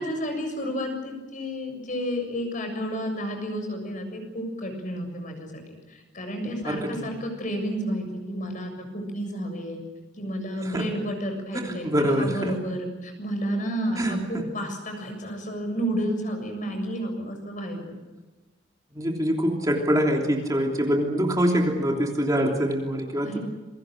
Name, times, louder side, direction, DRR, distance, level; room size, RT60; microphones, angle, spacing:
voice 1, 0.0-5.6 5.9-9.8 10.2-17.8 23.2-23.4, equal, 45° left, 5 dB, 7.3 m, -31 dB
voice 2, 6.6-7.1 10.6-10.9 11.5-12.6 13.9-14.4 18.9-23.4, equal, 20° right, 0 dB, 3.2 m, -25 dB
28.0 x 24.0 x 6.6 m, 1.2 s
head